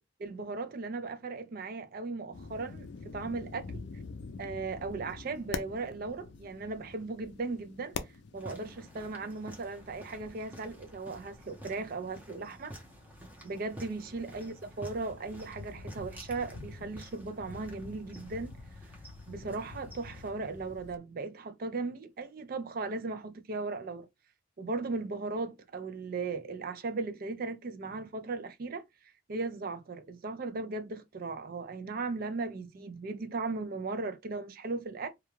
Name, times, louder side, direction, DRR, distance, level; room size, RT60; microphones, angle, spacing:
voice 1, 0.2-3.9 4.4-8.0 8.3-12.7 13.4-18.6 19.3-24.1 24.6-28.8 29.3-35.1, right 3 dB, 45° right, 0.4 m, -37 dB
sound 1, 2.3-21.0, left 4 dB, 55° left, 0.4 m, -47 dB
sound 2, 8.4-20.3, equal, 10° right, 0.7 m, -51 dB
2.3 x 2.2 x 3.0 m
head